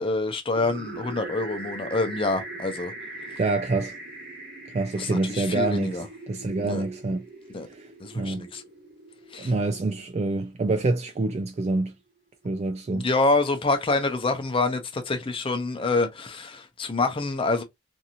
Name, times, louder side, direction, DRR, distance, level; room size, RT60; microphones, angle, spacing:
voice 1, 0.0-2.9 5.0-6.1 6.6-6.8 7.5-7.7 8.0-8.6 9.3-9.5 12.9-17.6, left 3 dB, 25° left, 0.6 m, -26 dB
sound 1, 0.5-10.4, right 2 dB, 55° right, 1.3 m, -41 dB
voice 2, 3.4-4.0 4.7-7.2 7.7-8.5 9.4-11.9 12.4-13.1, right 2 dB, 35° right, 0.3 m, -27 dB
2.9 x 2.6 x 2.5 m
head